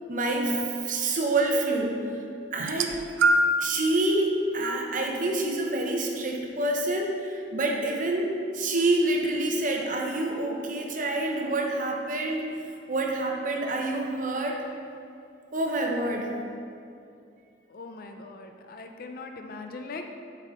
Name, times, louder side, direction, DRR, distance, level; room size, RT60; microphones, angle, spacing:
voice 1, 0.1-2.2 2.5-3.0 3.6-12.5 12.9-14.6 15.5-16.3, right 2 dB, 45° right, 1 dB, 0.8 m, -27 dB
sound 1, 2.6-3.7 4.6-4.8 5.9-6.0, right 1 dB, 85° right, 0.4 m, -24 dB
voice 2, 17.7-20.0, left 3 dB, 50° left, 5 dB, 0.5 m, -40 dB
7.5 x 5.5 x 3.7 m, 2.5 s
head